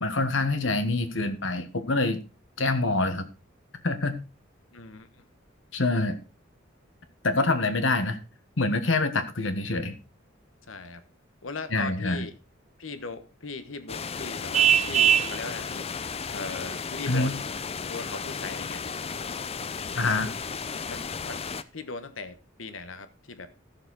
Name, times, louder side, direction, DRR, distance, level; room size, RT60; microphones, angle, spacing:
voice 1, 0.0-2.2 2.6-3.3 3.8-4.1 5.7-6.2 7.2-8.2 8.6-10.0 11.7-12.3 17.1-17.3 19.9-20.3, left 2 dB, 70° left, 1.5 m, -25 dB
voice 2, 4.7-5.1 10.7-11.0 11.4-12.3 12.8-15.9 16.3-17.4 17.8-18.8 20.8-21.4 21.7-23.5, left 4 dB, 85° left, 1.2 m, -39 dB
sound 1, 13.9-21.6, left 5 dB, 30° left, 0.5 m, -34 dB
Vehicle horn car horn honking, 14.5-15.4, right 9 dB, 35° right, 0.5 m, -20 dB
14.5 x 6.8 x 4.0 m
head